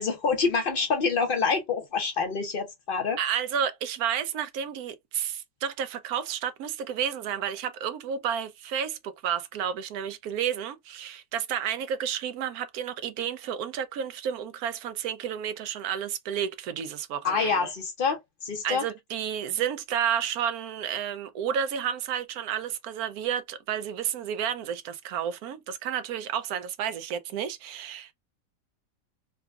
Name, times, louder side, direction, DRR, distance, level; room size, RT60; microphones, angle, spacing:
voice 1, 0.0-3.2 17.2-18.8, left 5 dB, 50° left, 0.6 m, -27 dB
voice 2, 3.2-17.7 18.6-28.1, right 9 dB, 70° right, 0.9 m, -31 dB
4.8 x 2.2 x 2.3 m
omnidirectional pair, 1.9 m